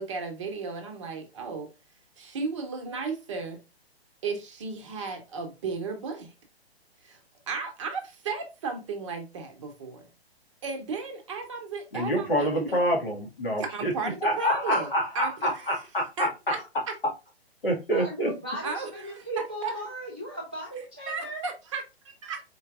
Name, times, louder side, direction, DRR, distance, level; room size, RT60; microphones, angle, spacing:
voice 1, 0.0-1.7 2.2-3.6 4.2-6.3 7.0-7.2 7.5-10.0 10.6-12.8 13.6-14.9 15.1-15.9 16.2-16.6 16.9-17.0 18.6-19.7 21.1-22.4, right 4 dB, 30° right, 0.8 m, -34 dB
voice 2, 11.9-13.9 14.2-16.3 17.6-18.3, equal, 60° left, 1.8 m, -27 dB
voice 3, 17.9-21.4, right 1 dB, 10° right, 0.3 m, -37 dB
4.3 x 3.8 x 2.4 m
figure-of-eight pair, 130°, 32 cm